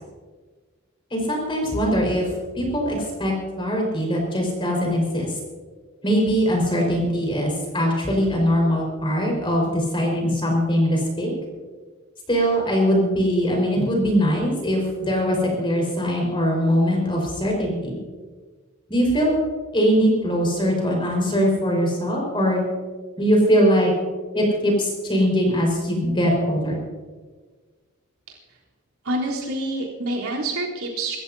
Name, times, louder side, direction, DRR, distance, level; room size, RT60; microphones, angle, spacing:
voice 1, 1.1-2.3 2.5-5.3 6.0-11.3 12.3-18.0 18.9-19.4 19.7-22.6 23.2-23.9 24.3-26.8, equal, 25° left, 0 dB, 5.0 m, -21 dB
voice 2, 29.0-31.2, right 1 dB, 90° right, -4 dB, 3.8 m, -27 dB
26.0 x 14.0 x 2.8 m, 1.4 s
head